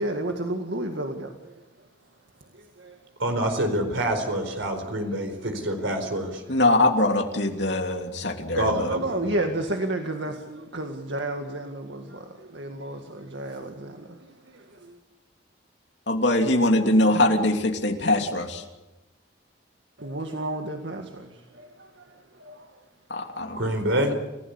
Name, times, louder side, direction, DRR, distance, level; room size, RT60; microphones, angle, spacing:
voice 1, 0.0-1.6 2.5-3.0 8.7-15.0 20.0-22.8, right 1 dB, 70° right, 4 dB, 2.0 m, -32 dB
voice 2, 3.2-6.4 8.5-9.3 23.5-24.1, right 1 dB, 85° right, 5 dB, 4.5 m, -26 dB
voice 3, 6.5-8.9 16.1-18.6 23.1-23.6, left 1 dB, 65° left, 4 dB, 3.1 m, -22 dB
29.0 x 16.5 x 8.3 m, 1.0 s
head